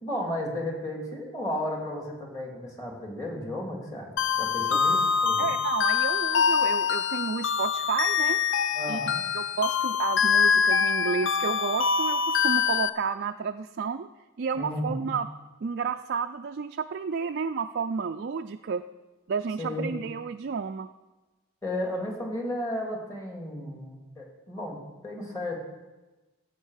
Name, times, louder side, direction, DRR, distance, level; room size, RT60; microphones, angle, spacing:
voice 1, 0.0-4.1 4.4-5.5 8.7-9.2 14.6-15.2 19.6-19.9 21.6-25.6, left 1 dB, 15° left, 0 dB, 2.5 m, -34 dB
sound 1, 4.2-12.9, left 6 dB, 60° left, 0.5 m, -25 dB
voice 2, 5.4-8.4 8.9-9.0 9.3-14.1 14.4-15.3 15.6-18.8 19.3-20.9, right 5 dB, 50° right, 6 dB, 0.4 m, -31 dB
15.0 x 8.2 x 6.5 m, 1.2 s
head